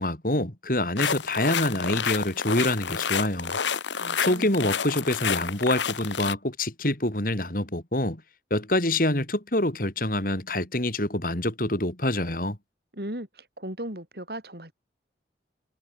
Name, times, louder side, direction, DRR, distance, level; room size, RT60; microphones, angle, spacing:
voice 1, 0.0-3.5 4.2-8.2 8.5-12.6, left 1 dB, 50° left, 3.4 m, -26 dB
sound 1, 1.0-6.3, left 6 dB, 80° left, 1.4 m, -29 dB
voice 2, 3.9-4.5 12.9-14.7, right 1 dB, 55° right, 6.4 m, -37 dB
head